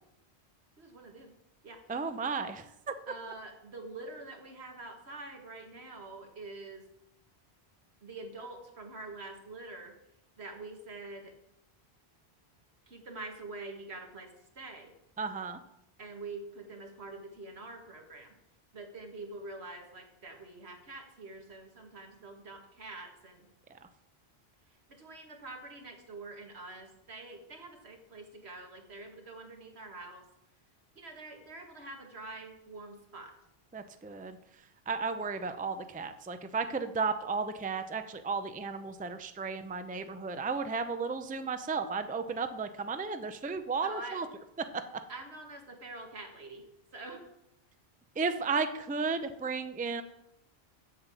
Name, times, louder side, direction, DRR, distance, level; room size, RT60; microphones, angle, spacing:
voice 1, 0.8-1.3 1.6-1.8 3.1-6.8 8.0-9.9 10.4-11.3 12.9-14.9 16.0-18.3 18.7-23.5 24.9-30.3 31.0-33.3 43.8-44.2 45.1-46.6 46.9-47.3, right 2 dB, 80° right, 3 dB, 2.0 m, -45 dB
voice 2, 1.9-2.9 15.2-15.6 33.7-34.4 34.9-44.3 44.7-44.8 48.2-50.0, right 4 dB, 10° right, 9 dB, 0.4 m, -34 dB
7.9 x 7.5 x 6.9 m, 0.82 s
omnidirectional pair, 1.1 m